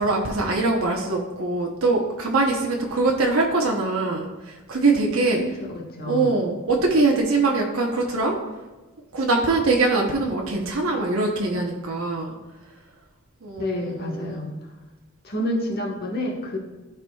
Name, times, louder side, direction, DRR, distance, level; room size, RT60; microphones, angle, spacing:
voice 1, 0.0-5.4 6.1-8.4 9.1-12.4 13.4-14.4, right 3 dB, 85° right, -1 dB, 0.9 m, -23 dB
voice 2, 5.7-6.3 13.6-14.5 15.2-16.6, left 1 dB, 45° left, -1 dB, 1.4 m, -28 dB
13.0 x 4.8 x 2.3 m, 1.2 s
head